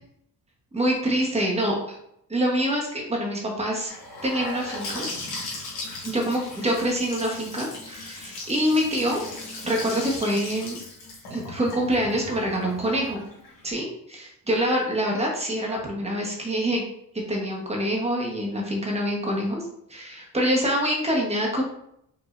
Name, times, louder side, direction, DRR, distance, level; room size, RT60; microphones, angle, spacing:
voice 1, 0.7-2.0 2.3-3.9 4.2-5.1 6.0-9.2 9.6-10.8 11.3-13.2 13.6-16.8 17.3-19.6 19.9-21.6, equal, 15° right, -1 dB, 1.2 m, -25 dB
Gurgling / Sink (filling or washing) / Bathtub (filling or washing), 3.9-13.7, left 2 dB, 85° left, 1.8 m, -37 dB
5.2 x 3.6 x 2.6 m, 0.74 s
cardioid pair, 135°, 37 cm